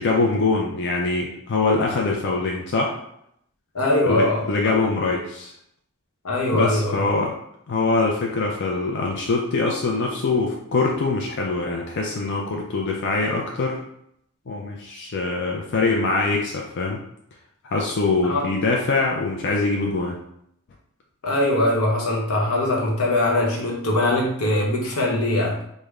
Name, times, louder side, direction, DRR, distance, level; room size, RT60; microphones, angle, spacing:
voice 1, 0.0-3.0 4.1-5.5 6.5-7.3 7.7-13.8 14.5-17.0 17.6-20.2, left 3 dB, 55° left, 0 dB, 0.4 m, -23 dB
voice 2, 3.7-4.4 6.2-7.0 18.2-18.4 21.2-25.6, left 1 dB, 90° left, -2 dB, 0.9 m, -21 dB
3.3 x 2.1 x 3.5 m, 0.74 s
head